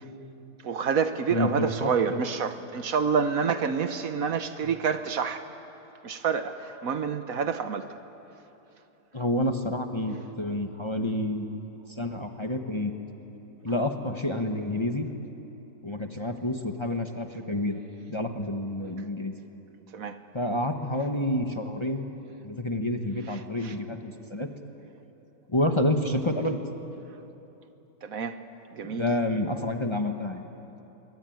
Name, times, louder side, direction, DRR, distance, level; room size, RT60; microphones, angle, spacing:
voice 1, 0.6-5.5 6.0-7.9 19.9-20.2 23.3-23.7 28.0-28.4 28.7-29.0, right 6 dB, 65° right, 9 dB, 1.4 m, -28 dB
voice 2, 1.3-2.2 9.1-11.6 11.9-12.9 13.6-15.1 15.8-17.8 18.1-19.3 20.3-22.1 22.4-24.5 25.5-26.6 28.9-30.5, left 1 dB, 20° left, 4 dB, 1.3 m, -29 dB
23.5 x 23.5 x 9.4 m, 3.0 s
omnidirectional pair, 1.6 m